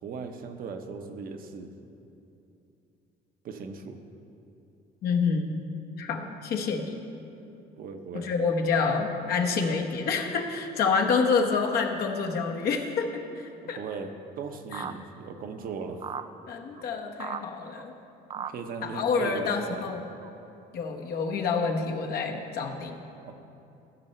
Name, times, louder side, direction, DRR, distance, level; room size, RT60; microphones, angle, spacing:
voice 1, 0.0-1.7 3.4-4.0 7.8-8.3 13.6-14.1 14.4-16.0 18.4-20.0 23.2-23.3, right 5 dB, 60° right, 6 dB, 0.9 m, -38 dB
voice 2, 5.0-5.7 6.0-7.0 8.1-13.8 14.7-14.8 16.5-17.9 18.8-20.0 20.7-23.0, left 5 dB, 65° left, 2 dB, 1.1 m, -28 dB
sound 1, 14.7-14.9 16.0-16.3 16.8-16.9 17.2-17.4 17.8-17.9 18.3-18.5 19.6-19.7 20.2-20.3, right 7 dB, 30° right, 0.3 m, -35 dB
15.0 x 5.5 x 4.3 m, 2.8 s
cardioid pair, 110°, 17 cm